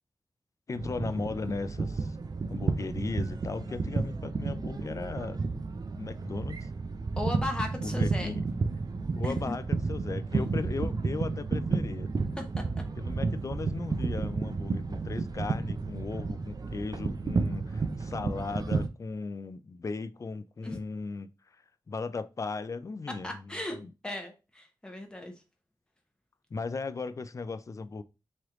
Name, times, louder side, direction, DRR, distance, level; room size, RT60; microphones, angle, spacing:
voice 1, 0.7-2.2 2.5-5.4 5.9-6.7 7.8-8.5 9.2-12.1 13.0-21.6 21.9-23.9 26.5-28.0, left 4 dB, 40° left, 0.4 m, -37 dB
sound 1, 0.7-18.9, right 4 dB, 55° right, 0.5 m, -32 dB
voice 2, 7.2-8.3 9.2-9.4 12.4-12.6 20.6-20.8 23.2-23.8 24.0-25.3, left 1 dB, 10° left, 1.0 m, -36 dB
3.2 x 3.1 x 3.7 m
cardioid pair, 60°, 8 cm